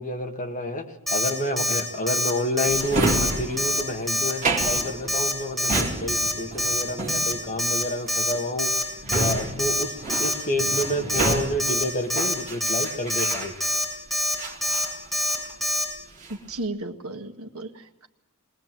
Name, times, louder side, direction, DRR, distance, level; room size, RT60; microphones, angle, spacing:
voice 1, 0.0-8.8 9.1-13.5, left 1 dB, 35° left, 3 dB, 1.9 m, -29 dB
Alarm, 1.1-1.3 1.6-1.8 2.1-2.3 2.6-2.8 3.1-3.3 3.6-3.8 4.1-4.3 4.6-4.8 5.1-5.3 5.6-5.8 6.1-6.3 6.6-6.8 7.1-7.3 7.6-7.8 8.1-8.3 8.6-8.8 9.1-9.3 9.6-9.8 10.1-10.3 10.6-10.8 11.1-11.3 11.6-11.8 12.1-12.3 12.6-12.8 13.1-13.3 13.6-13.8 14.1-14.3 14.6-14.9 15.1-15.4 15.6-15.8, left 1 dB, ahead, 6.0 m, -25 dB
Drawer open or close, 2.7-13.9 14.4-15.7 16.0-16.5, right 2 dB, 35° right, 3.0 m, -30 dB
voice 2, 16.3-18.1, right 2 dB, 75° right, 6 dB, 1.6 m, -34 dB
22.0 x 19.0 x 7.6 m, 0.90 s
head